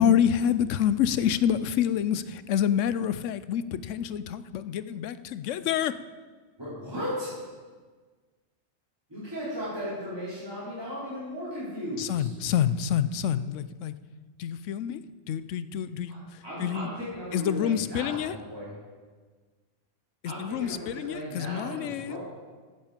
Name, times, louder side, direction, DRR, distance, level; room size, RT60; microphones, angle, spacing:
voice 1, 0.0-5.9 12.0-13.9 14.4-15.0 15.3-16.2 16.6-16.9 17.3-18.3 20.2-22.2, left 9 dB, 75° left, 14 dB, 0.9 m, -27 dB
voice 2, 6.6-7.3 9.1-12.3 16.1-18.7 20.2-22.2, equal, 20° right, -11 dB, 4.2 m, -36 dB
16.0 x 8.0 x 5.1 m, 1.5 s
omnidirectional pair, 1.3 m